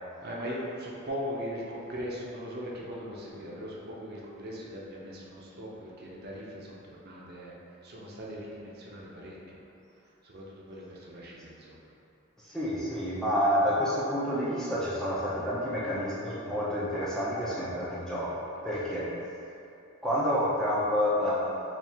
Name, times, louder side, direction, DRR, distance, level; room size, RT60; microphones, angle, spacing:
voice 1, 0.2-7.5 7.8-9.6 10.2-11.8, equal, 50° right, -4 dB, 0.5 m, -39 dB
voice 2, 12.5-19.1 20.0-21.6, equal, 5° left, -8 dB, 0.4 m, -29 dB
4.3 x 2.4 x 3.4 m, 2.7 s
head